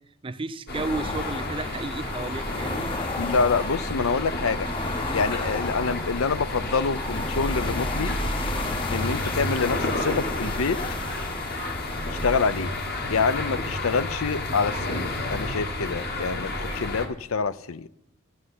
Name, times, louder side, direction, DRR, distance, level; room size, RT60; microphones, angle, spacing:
voice 1, 0.2-3.0, right 3 dB, 25° right, 0.5 m, -33 dB
sound 1, 0.7-17.1, left 1 dB, 50° left, 1.7 m, -31 dB
sound 2, 0.7-15.1, left 2 dB, 25° left, 0.7 m, -34 dB
voice 2, 3.2-4.7 5.1-8.2 8.9-10.8 12.1-12.7 13.1-17.9, left 5 dB, 80° left, 0.6 m, -26 dB
12.5 x 6.4 x 9.5 m
head